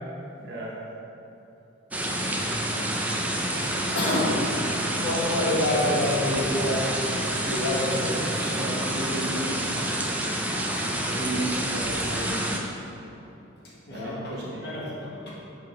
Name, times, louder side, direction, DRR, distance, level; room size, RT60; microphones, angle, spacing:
voice 1, 0.4-0.8 7.9-10.0 11.0-12.7 13.9-14.7, right 1 dB, 50° right, -6 dB, 1.0 m, -34 dB
sound 1, 1.9-12.6, right 1 dB, 5° right, 0.4 m, -28 dB
voice 2, 3.9-6.9 7.4-8.0 13.9-15.3, left 1 dB, 50° left, -6 dB, 1.5 m, -27 dB
7.8 x 4.0 x 5.5 m, 3.0 s
head